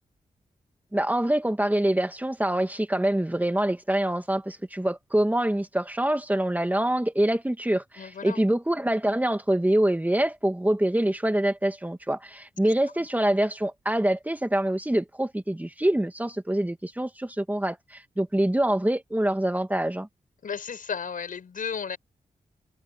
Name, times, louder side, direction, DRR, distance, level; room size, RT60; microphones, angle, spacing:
voice 1, 0.9-20.1, right 1 dB, 10° right, 2.0 m, -25 dB
voice 2, 8.0-8.5 20.4-22.0, left 6 dB, 75° left, 6.6 m, -34 dB
cardioid pair, 65°, 14 cm